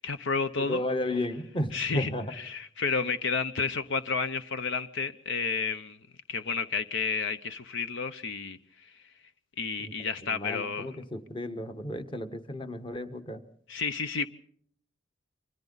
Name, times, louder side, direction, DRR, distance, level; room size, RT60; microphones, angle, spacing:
voice 1, 0.0-0.8 1.7-2.1 2.4-6.0 6.3-8.6 9.6-10.9 13.7-14.3, left 5 dB, 65° left, 0.8 m, -31 dB
voice 2, 0.6-2.3 9.8-9.9 10.2-13.4, left 1 dB, 25° left, 1.4 m, -33 dB
28.0 x 25.0 x 4.0 m
head